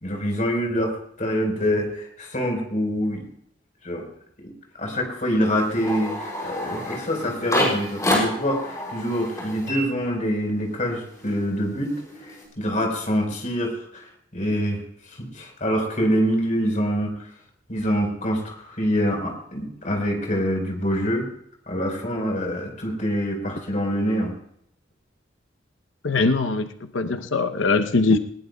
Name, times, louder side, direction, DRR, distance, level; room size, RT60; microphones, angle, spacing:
voice 1, 0.0-3.2 3.8-4.0 4.4-4.5 4.8-11.9 12.2-14.8 15.1-17.3 17.7-21.3 21.7-24.3, equal, 40° left, 1 dB, 4.4 m, -25 dB
sound 1, 5.5-10.6 10.9-12.4, left 1 dB, 20° left, 6.5 m, -29 dB
voice 2, 26.0-28.2, left 3 dB, 85° left, 8 dB, 0.8 m, -21 dB
20.5 x 19.0 x 2.3 m, 0.69 s
head